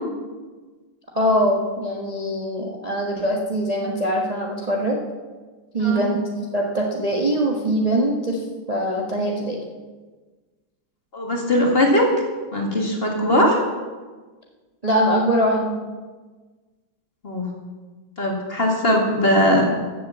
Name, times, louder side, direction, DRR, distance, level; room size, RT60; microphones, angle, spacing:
voice 1, 1.1-5.0 5.7-6.2 6.5-9.6 14.8-15.7, right 1 dB, 20° right, -1 dB, 1.2 m, -22 dB
voice 2, 11.1-12.1 12.5-13.6 17.2-17.5 18.2-19.7, left 1 dB, 30° left, 0 dB, 2.2 m, -19 dB
14.5 x 7.9 x 7.2 m, 1.4 s
omnidirectional pair, 2.2 m